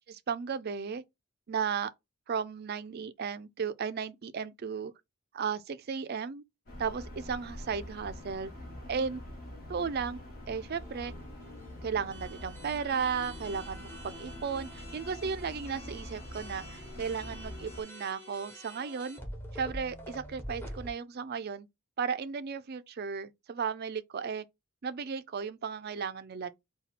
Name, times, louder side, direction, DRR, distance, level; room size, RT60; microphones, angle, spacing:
voice 1, 0.1-1.0 1.5-1.9 2.3-4.9 5.3-6.4 6.8-8.5 8.9-9.2 9.7-10.2 10.5-11.1 11.8-19.2 19.5-21.7 22.0-24.4 24.8-26.5, right 6 dB, 45° right, 0.4 m, -35 dB
sound 1, 6.7-17.8, left 1 dB, 45° left, 1.4 m, -45 dB
sound 2, 10.7-20.9, equal, 10° left, 0.9 m, -47 dB
4.2 x 2.3 x 4.2 m
head